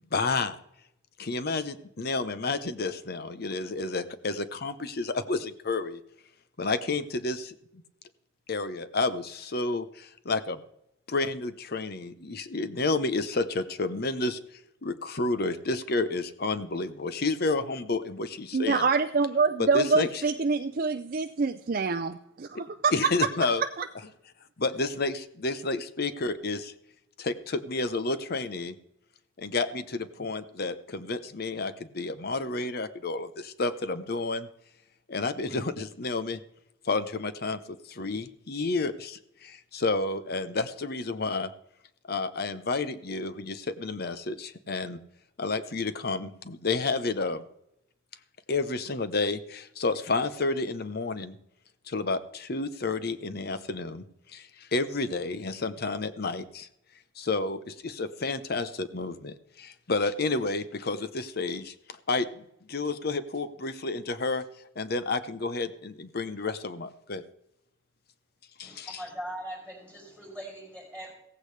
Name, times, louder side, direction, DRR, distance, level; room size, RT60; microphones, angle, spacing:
voice 1, 0.1-0.6 1.2-6.0 6.6-7.5 8.5-10.6 11.1-14.4 14.8-18.9 19.6-20.1 22.5-22.6 22.9-23.6 24.6-26.7 27.2-28.7 29.4-34.5 35.1-36.4 36.8-41.5 42.1-45.0 45.4-47.5 48.5-51.4 51.9-56.7 57.2-64.5 64.8-67.2 68.6-69.0, left 3 dB, 55° left, 11 dB, 0.9 m, -30 dB
voice 2, 18.5-22.9 23.6-23.9, right 4 dB, 45° right, 8 dB, 0.5 m, -26 dB
voice 3, 68.6-71.1, right 1 dB, 5° left, -1 dB, 5.1 m, -40 dB
16.0 x 15.0 x 3.3 m, 0.79 s
head